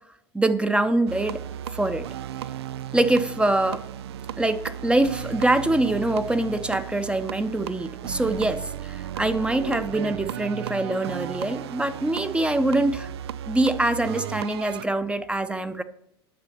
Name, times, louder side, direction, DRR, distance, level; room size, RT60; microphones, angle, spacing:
voice 1, 0.3-1.4 1.7-2.1 2.9-3.9 4.4-13.1 13.5-15.8, right 2 dB, 10° right, 10 dB, 0.7 m, -24 dB
sound 1, 1.1-14.8, right 11 dB, 80° right, 0.4 m, -35 dB
10.0 x 6.7 x 5.7 m, 0.76 s
hypercardioid pair, 85°, 13 cm